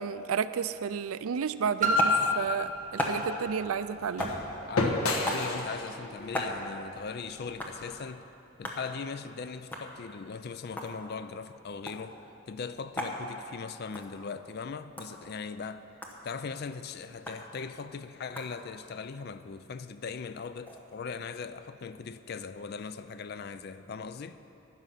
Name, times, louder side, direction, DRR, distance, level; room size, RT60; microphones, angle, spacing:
voice 1, 0.0-4.3, right 7 dB, 75° right, 0.4 m, -32 dB
Piano, 1.8-7.2 8.0-8.1, left 1 dB, 35° right, 1.0 m, -32 dB
sound 1, 2.0-8.1, left 2 dB, 80° left, 1.2 m, -35 dB
sound 2, 2.0-2.2 3.0-3.2 4.2-4.4 5.3-5.5 6.3-6.6 7.6-7.8 8.6-8.8 9.7-9.9 10.6-10.9 11.9-12.0 13.0-13.2 13.9-14.1 15.0-15.1 16.0-16.2 17.3-17.4 18.4-18.5 20.1-20.8, left 1 dB, 10° left, 1.0 m, -34 dB
voice 2, 4.7-8.2 8.6-12.2 12.5-15.9 16.2-24.4, left 5 dB, 45° left, 0.4 m, -39 dB
12.5 x 9.4 x 5.7 m
head